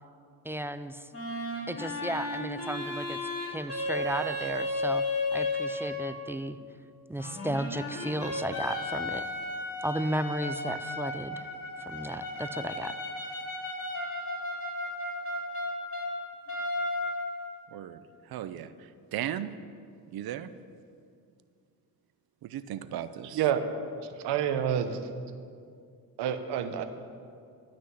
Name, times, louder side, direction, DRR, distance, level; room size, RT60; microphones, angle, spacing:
voice 1, 0.4-1.1 1.7-3.2 3.5-5.0 5.3-6.6 7.1-9.2 9.8-11.5 11.9-12.9, equal, 5° right, 10 dB, 0.4 m, -34 dB
sound 1, 1.1-6.3 7.2-16.1 16.5-17.5, left 1 dB, 35° left, 3.1 m, -34 dB
voice 2, 17.7-19.5 20.1-20.5 22.4-23.5, right 11 dB, 65° right, 12 dB, 0.7 m, -37 dB
voice 3, 24.2-25.0 26.2-26.8, right 9 dB, 90° right, 8 dB, 1.1 m, -28 dB
12.5 x 6.2 x 9.5 m, 2.3 s
cardioid pair, 105°, 39 cm